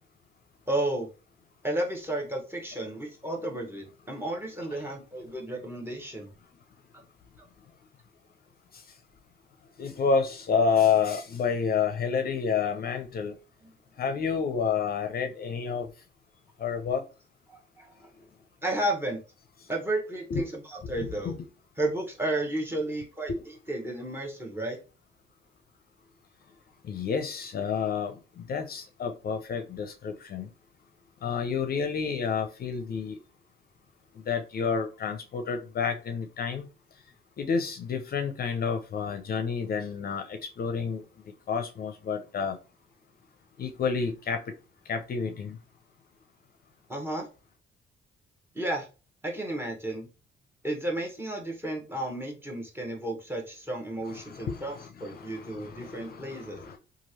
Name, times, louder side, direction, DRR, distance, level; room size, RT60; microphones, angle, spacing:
voice 1, 0.7-1.1 1.6-6.3 17.5-17.9 18.6-19.2 19.7-21.3 21.8-23.3 23.7-24.8 46.9-47.3 48.5-48.9 49.2-50.1 50.6-56.6, right 1 dB, 10° right, 1.0 m, -32 dB
voice 2, 9.8-13.3 14.0-15.9 16.6-17.0 20.3-20.4 20.8-21.4 26.8-30.5 31.2-33.2 34.3-36.7 37.4-41.0 41.5-42.6 43.6-44.4 44.9-45.6 54.1-56.8, left 6 dB, 50° left, 0.5 m, -29 dB
3.0 x 2.4 x 2.8 m
cardioid pair, 90°, 20 cm